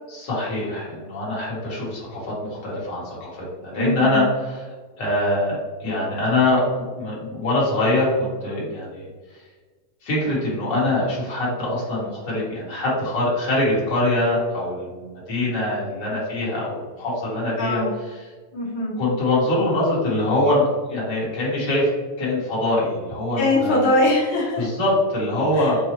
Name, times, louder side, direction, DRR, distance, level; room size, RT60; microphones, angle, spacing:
voice 1, 0.1-4.7 5.0-9.1 10.0-17.8 19.0-21.9 22.2-23.8 24.6-25.8, left 1 dB, 50° left, -6 dB, 1.5 m, -23 dB
voice 2, 3.7-4.2 17.6-17.9 18.5-18.9 23.4-24.7 25.5-25.7, left 1 dB, 80° left, -6 dB, 1.0 m, -22 dB
6.2 x 2.3 x 2.9 m, 1.4 s
omnidirectional pair, 3.7 m